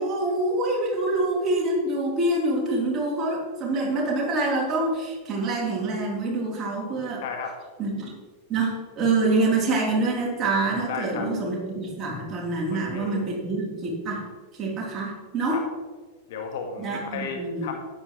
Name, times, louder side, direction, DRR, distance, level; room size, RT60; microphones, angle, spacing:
voice 1, 0.0-7.2 7.8-8.1 8.5-14.2 14.6-15.6 16.8-17.7, right 2 dB, 30° right, -3 dB, 3.6 m, -26 dB
voice 2, 7.2-7.6 10.9-11.3 12.7-13.4 15.5-15.6 16.3-17.8, left 5 dB, 55° left, 3 dB, 1.6 m, -34 dB
12.5 x 10.0 x 3.2 m, 1.4 s
figure-of-eight pair, 90°, 0 cm